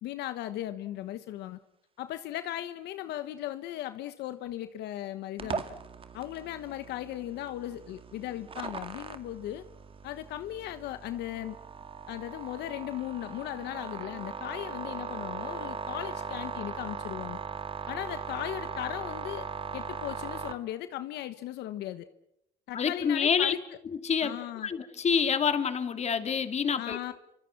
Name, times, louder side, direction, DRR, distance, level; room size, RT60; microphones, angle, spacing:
voice 1, 0.0-1.6 2.0-5.6 6.1-9.6 10.0-11.6 12.1-17.4 17.9-19.5 19.7-22.1 22.7-23.6 24.2-24.7 26.8-27.1, left 13 dB, 80° left, 11 dB, 1.3 m, -37 dB
sound 1, 5.4-20.5, right 5 dB, 30° right, 2.3 m, -39 dB
voice 2, 22.7-23.5 24.0-24.4 24.6-27.0, left 6 dB, 40° left, 9 dB, 2.8 m, -27 dB
29.0 x 25.5 x 6.0 m, 0.80 s
cardioid pair, 110°, 17 cm